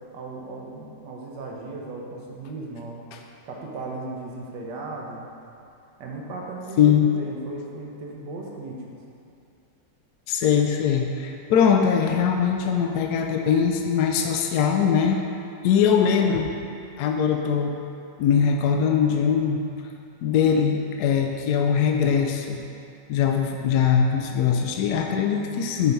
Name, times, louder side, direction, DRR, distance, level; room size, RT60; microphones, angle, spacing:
voice 1, 0.1-3.0 3.5-5.3 6.0-8.8 25.2-25.6, right 2 dB, 80° right, -1 dB, 1.6 m, -36 dB
voice 2, 6.8-7.1 10.3-15.2 15.6-16.5 17.0-17.8 18.2-19.6 20.2-22.6 23.1-25.9, left 7 dB, 75° left, 3 dB, 1.1 m, -21 dB
8.2 x 4.4 x 5.3 m, 2.6 s
omnidirectional pair, 1.9 m